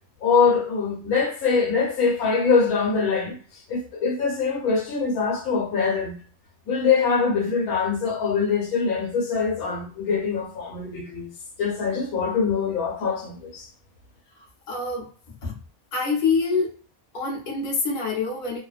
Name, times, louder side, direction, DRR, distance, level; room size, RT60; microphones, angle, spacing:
voice 1, 0.2-3.4 3.7-6.2 6.7-11.3 11.6-13.7, left 5 dB, 85° left, 1.2 m, -23 dB
voice 2, 14.7-15.1 15.4-15.5 15.9-16.8 17.1-18.6, left 4 dB, 40° left, 0.7 m, -25 dB
2.5 x 2.2 x 2.3 m
omnidirectional pair, 1.5 m